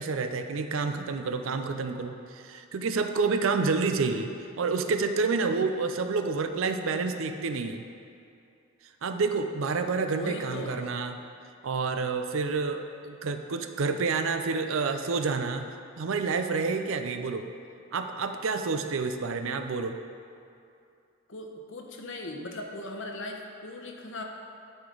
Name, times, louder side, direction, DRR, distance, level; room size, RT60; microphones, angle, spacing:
voice 1, 0.0-4.3 4.6-7.8 9.0-11.2 11.6-15.7 16.0-17.5 17.9-20.0, right 4 dB, 70° right, 7 dB, 0.5 m, -29 dB
voice 2, 10.0-11.0 21.3-24.2, left 2 dB, 60° left, 2 dB, 0.9 m, -38 dB
12.0 x 5.0 x 3.9 m, 2.6 s
head